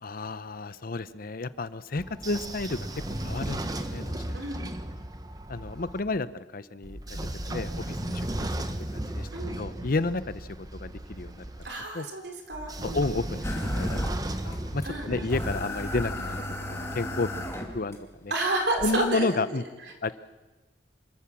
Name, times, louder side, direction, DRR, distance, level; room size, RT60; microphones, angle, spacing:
voice 1, 0.0-2.9 3.2-4.2 5.5-8.5 8.9-9.3 9.6-11.5 11.9-12.1 12.8-14.0 14.4-16.4 16.7-18.3 18.8-19.6 20.0-20.1, left 3 dB, 55° left, 15 dB, 0.8 m, -31 dB
Train / Sliding door, 2.0-6.0 6.8-11.7 12.5-16.4, right 1 dB, 20° right, 1.1 m, -35 dB
voice 2, 4.3-4.7 8.4-8.5 9.3-9.6 11.6-13.0 14.8-15.1 18.3-19.4, right 2 dB, 70° right, 2 dB, 4.0 m, -30 dB
sound 1, 13.4-14.6 14.8-14.9 15.3-18.0 18.8-18.9, left 1 dB, 15° left, 2.6 m, -33 dB
26.0 x 15.0 x 7.2 m, 1.2 s
head